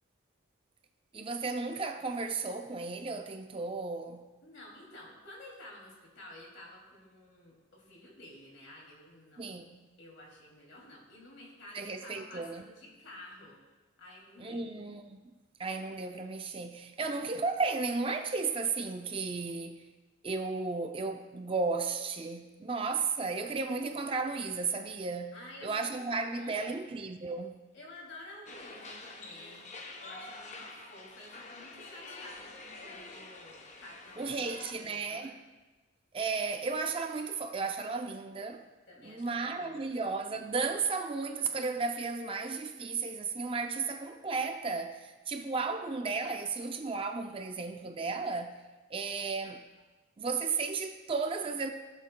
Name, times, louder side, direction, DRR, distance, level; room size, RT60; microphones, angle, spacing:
voice 1, 1.1-4.3 9.4-9.9 11.7-12.6 14.4-15.2 15.6-19.9 20.2-25.4 25.6-27.6 34.2-35.3 36.1-38.7 39.0-48.6 48.9-49.6 50.2-51.7, right 4 dB, 25° right, 0.4 m, -34 dB
voice 2, 4.4-9.6 10.0-13.6 14.0-14.8 17.0-17.1 25.3-26.8 27.7-29.7 30.0-35.3 38.9-40.0 50.3-50.4, left 1 dB, 65° left, 2.6 m, -51 dB
sound 1, 28.5-34.7, left 3 dB, 35° left, 0.7 m, -47 dB
16.5 x 7.4 x 2.2 m
head